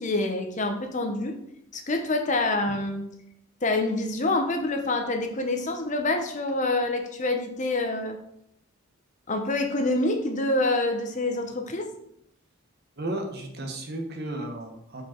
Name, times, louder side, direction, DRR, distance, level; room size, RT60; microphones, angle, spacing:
voice 1, 0.0-1.4 1.7-3.0 3.6-8.2 9.3-11.9, left 2 dB, 35° left, 5 dB, 0.8 m, -26 dB
voice 2, 13.0-15.0, right 1 dB, 45° right, 3 dB, 1.1 m, -34 dB
6.5 x 5.1 x 4.4 m, 0.75 s
head